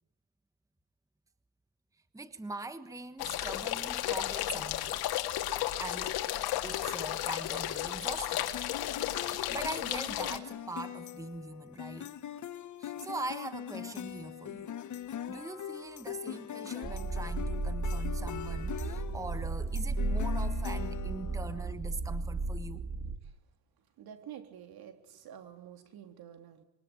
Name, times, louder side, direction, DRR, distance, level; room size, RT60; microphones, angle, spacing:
voice 1, 2.1-5.0 5.8-6.2 6.6-8.5 9.1-12.1 12.8-14.7 15.3-22.9, right 3 dB, 10° right, 1.3 m, -42 dB
sound 1, 3.2-10.4, left 13 dB, 70° left, 2.4 m, -33 dB
sound 2, 8.5-21.7, left 9 dB, 50° left, 1.5 m, -42 dB
sound 3, 16.8-23.2, right 2 dB, 40° right, 3.5 m, -34 dB
voice 2, 24.0-26.6, right 9 dB, 65° right, 3.7 m, -49 dB
26.0 x 23.0 x 9.0 m
cardioid pair, 105°, 39 cm